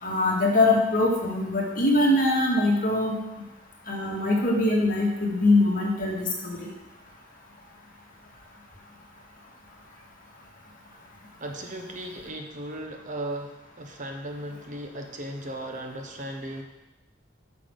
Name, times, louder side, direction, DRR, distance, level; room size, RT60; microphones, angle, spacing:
voice 1, 0.0-3.2 3.9-6.7, left 2 dB, 45° left, -2 dB, 2.0 m, -23 dB
voice 2, 11.4-16.6, right 1 dB, 40° right, 3 dB, 0.9 m, -36 dB
7.7 x 5.9 x 6.5 m, 0.99 s
head